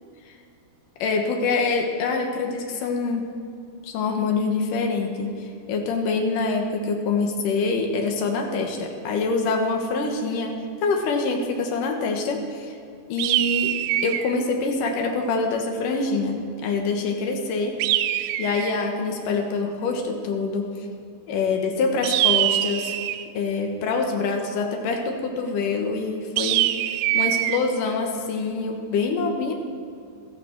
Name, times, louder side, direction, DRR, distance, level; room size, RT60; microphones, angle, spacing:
voice 1, 1.0-3.3 3.8-5.3 5.7-12.8 13.1-13.7 14.0-17.8 18.4-20.7 21.3-23.0 23.3-26.7 27.1-29.5, left 4 dB, 65° left, 3 dB, 2.5 m, -25 dB
sound 1, 13.2-14.4 17.8-18.8 22.0-23.3 26.4-27.6, right 14 dB, 85° right, 2.6 m, -23 dB
14.5 x 13.5 x 4.6 m, 2.4 s
omnidirectional pair, 4.8 m